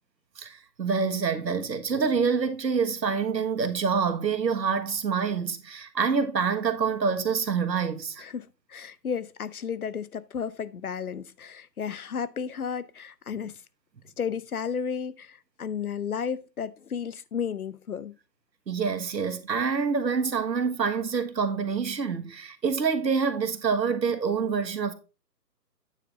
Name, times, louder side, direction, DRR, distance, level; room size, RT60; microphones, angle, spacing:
voice 1, 0.4-8.2 18.7-24.9, right 5 dB, 80° right, 1.4 m, -26 dB
voice 2, 8.2-13.6 14.2-18.1, left 7 dB, 60° left, 0.7 m, -33 dB
9.2 x 4.9 x 4.1 m
hypercardioid pair, 175°, 50 cm